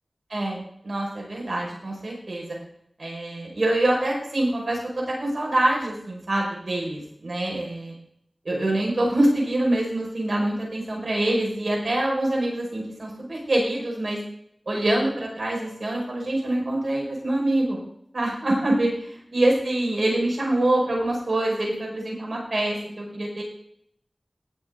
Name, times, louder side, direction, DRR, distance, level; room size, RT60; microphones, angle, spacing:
voice 1, 0.3-2.6 3.0-7.9 8.4-14.2 14.7-17.8 18.1-23.4, right 1 dB, 70° right, -2 dB, 5.7 m, -25 dB
18.0 x 7.5 x 4.0 m, 0.71 s
wide cardioid pair, 65°, 0 cm